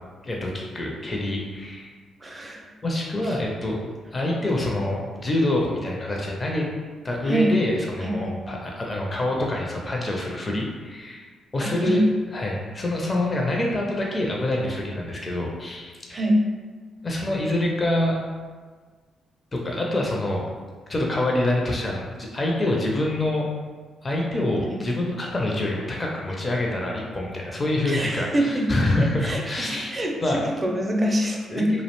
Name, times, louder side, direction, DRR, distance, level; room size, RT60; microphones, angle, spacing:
voice 1, 0.2-1.9 2.8-3.8 4.1-6.7 7.0-11.3 11.5-12.0 12.3-16.2 17.0-18.2 19.5-20.4 20.9-23.5 24.0-29.9 30.2-30.4 31.5-31.6, left 1 dB, 30° left, -2 dB, 0.4 m, -26 dB
voice 2, 2.2-2.7 3.2-3.4 7.2-7.5 8.0-8.4 11.6-12.0 16.1-16.4 27.8-31.7, right 1 dB, 30° right, 0 dB, 0.5 m, -25 dB
2.4 x 2.0 x 2.9 m, 1.5 s
supercardioid pair, 60°, 0 cm